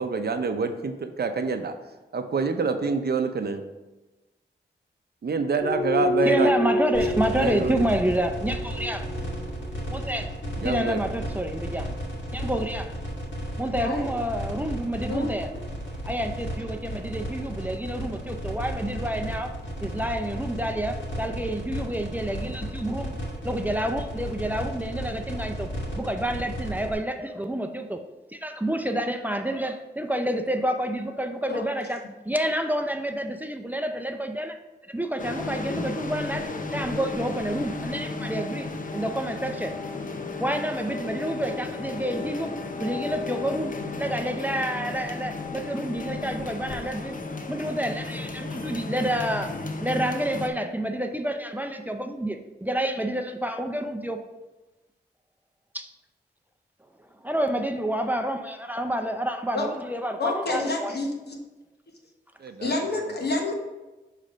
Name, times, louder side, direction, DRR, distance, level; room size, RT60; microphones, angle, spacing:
voice 1, 0.0-1.7 2.1-3.6 5.2-6.5 7.3-7.9 10.6-11.0 17.4-17.5 62.4-62.8, right 4 dB, 60° right, 7 dB, 0.6 m, -27 dB
sound 1, 5.6-11.7, left 1 dB, 20° left, 1.4 m, -29 dB
voice 2, 6.2-9.1 9.9-10.3 10.6-12.0 12.3-12.9 13.6-15.5 16.0-23.1 23.4-25.7 26.0-28.0 28.3-34.6 34.9-39.7 40.4-47.1 47.5-54.2 55.7-55.9 57.2-60.9, right 1 dB, 10° right, 5 dB, 0.5 m, -29 dB
sound 2, 6.9-26.9, equal, 80° left, 1.7 m, -34 dB
voice 3, 13.8-14.1 15.1-15.3 31.5-31.7 59.5-59.7 60.2-61.4 62.6-63.5, left 2 dB, 65° left, 1 dB, 1.2 m, -28 dB
sound 3, 35.2-50.5, left 3 dB, 45° left, 0.7 m, -34 dB
6.4 x 3.3 x 5.0 m, 1.1 s
cardioid pair, 60°, 19 cm